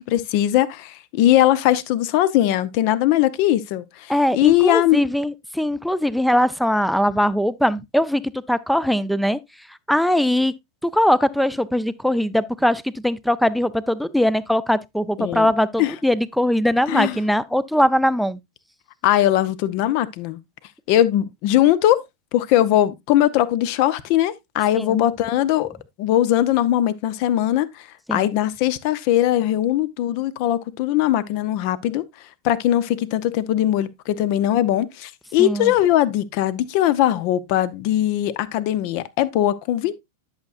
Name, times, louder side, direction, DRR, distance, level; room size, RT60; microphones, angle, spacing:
voice 1, 0.1-5.0 15.2-15.5 15.8-15.9 16.9-17.2 19.0-20.4 20.9-22.0 22.3-25.7 26.0-32.1 32.4-39.9, left 13 dB, 45° left, 0.6 m, -20 dB
voice 2, 4.1-8.2 8.5-9.4 9.9-10.5 10.8-18.4 24.7-25.0 28.1-28.3 35.4-35.7, equal, ahead, 0.5 m, -21 dB
11.0 x 6.6 x 2.4 m
figure-of-eight pair, 90°, 0 cm